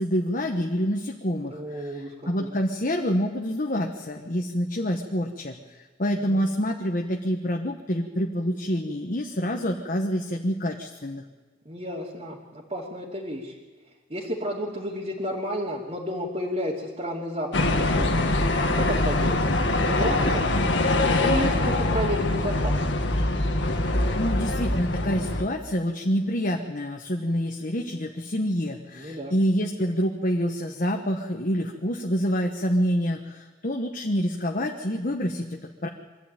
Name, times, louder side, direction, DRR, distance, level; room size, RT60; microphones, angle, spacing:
voice 1, 0.0-11.2 23.8-35.9, equal, 45° left, 2 dB, 1.3 m, -27 dB
voice 2, 1.5-2.5 6.2-6.4 11.6-13.5 14.1-18.1 18.6-19.4 19.8-20.4 21.2-22.9 28.9-29.3, equal, 35° right, -5 dB, 2.9 m, -32 dB
sound 1, 17.5-25.4, left 2 dB, 75° left, 1.9 m, -23 dB
24.0 x 14.0 x 9.1 m, 1.3 s
head